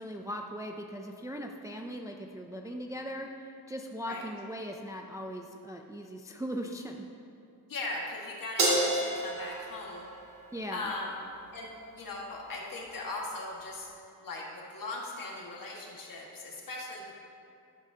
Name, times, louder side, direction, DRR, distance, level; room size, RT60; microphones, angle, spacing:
voice 1, 0.0-3.3 3.7-7.1 10.5-10.9, equal, 10° right, 2 dB, 0.3 m, -39 dB
voice 2, 7.7-10.1 10.7-11.2 11.5-13.9 14.2-17.2, left 2 dB, 55° left, -2 dB, 1.7 m, -39 dB
Crash cymbal, 8.6-11.1, right 1 dB, 75° right, 2.3 m, -30 dB
11.0 x 11.0 x 2.8 m, 2.6 s
wide cardioid pair, 170°, 39 cm